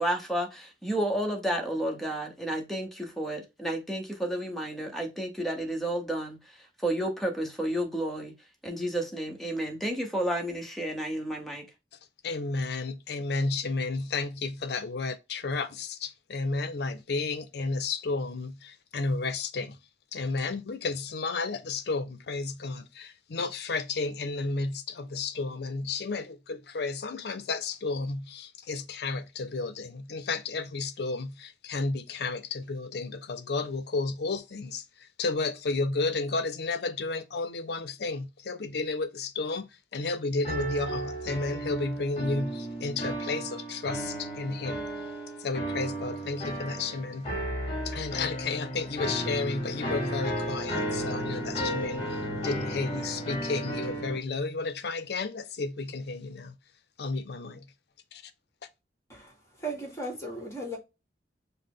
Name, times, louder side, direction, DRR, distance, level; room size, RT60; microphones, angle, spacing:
voice 1, 0.0-6.4 6.8-8.3 8.6-11.7, right 1 dB, ahead, 1.0 m, -31 dB
voice 2, 12.2-19.8 20.1-44.8 45.4-47.3 47.8-56.5 57.0-57.7 58.1-58.3, left 3 dB, 65° left, 0.6 m, -32 dB
sound 1, 40.4-54.2, right 1 dB, 35° left, 1.5 m, -34 dB
voice 3, 59.1-60.8, right 1 dB, 15° left, 1.5 m, -37 dB
5.5 x 2.1 x 3.6 m
head